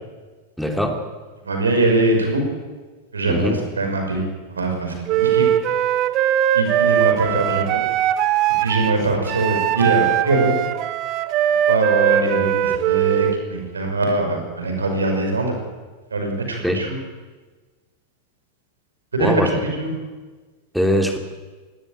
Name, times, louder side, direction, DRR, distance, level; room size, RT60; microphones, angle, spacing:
voice 1, 0.6-1.0 3.3-3.6 16.6-16.8 19.2-19.6 20.7-21.2, equal, ahead, 3 dB, 3.2 m, -21 dB
voice 2, 1.5-2.4 3.1-4.3 4.6-5.4 6.5-7.8 8.6-10.5 11.7-15.5 16.1-17.0 19.1-19.4 19.8-19.9, right 2 dB, 75° right, 3 dB, 5.7 m, -22 dB
Wind instrument woodwind instrument, 5.1-13.4, right 11 dB, 40° right, 1.3 m, -20 dB
18.5 x 18.0 x 9.1 m, 1.3 s
figure-of-eight pair, 90°, 0 cm